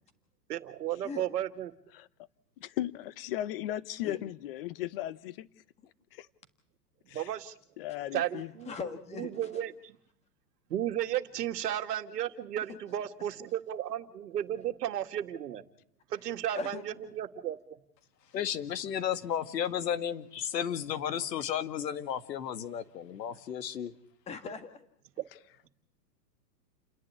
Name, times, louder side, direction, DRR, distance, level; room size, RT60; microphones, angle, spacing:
voice 1, 0.5-1.7 7.1-7.5 8.1-8.8 9.2-10.0 10.7-15.6 16.1-17.8, right 11 dB, 70° right, 2.1 m, -34 dB
voice 2, 2.6-5.5 6.1-6.3 7.1-7.3 7.8-8.5, left 13 dB, 35° left, 0.9 m, -36 dB
voice 3, 8.7-9.3 12.6-12.8 16.6-16.9 24.3-24.9, left 4 dB, 15° left, 1.7 m, -39 dB
voice 4, 18.3-23.9, left 9 dB, 80° left, 2.0 m, -33 dB
30.0 x 10.5 x 9.7 m
hypercardioid pair, 160°, 49 cm